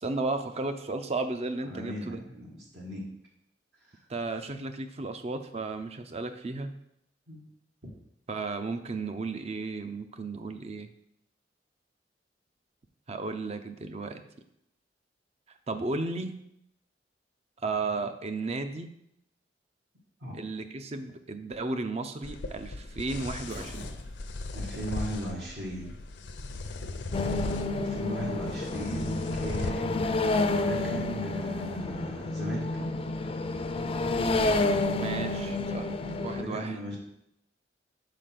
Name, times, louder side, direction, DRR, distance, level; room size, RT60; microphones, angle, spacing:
voice 1, 0.0-2.2 4.1-6.7 8.3-10.9 13.1-14.2 15.7-16.4 17.6-18.9 20.3-23.9 35.0-35.9 36.2-36.7, right 3 dB, 35° right, 9 dB, 0.5 m, -34 dB
voice 2, 1.7-3.0 3.8-4.0 7.3-7.4 20.2-20.4 24.5-25.9 27.7-32.9 36.1-37.0, right 1 dB, 70° right, -3 dB, 1.5 m, -38 dB
sound 1, 22.2-29.7, left 2 dB, 80° left, 0.6 m, -38 dB
sound 2, 23.4-25.7 25.9-27.0 28.2-29.7, equal, 85° right, 2.9 m, -50 dB
sound 3, 27.1-36.4, left 2 dB, 30° left, 0.4 m, -29 dB
5.0 x 4.7 x 5.9 m, 0.78 s
head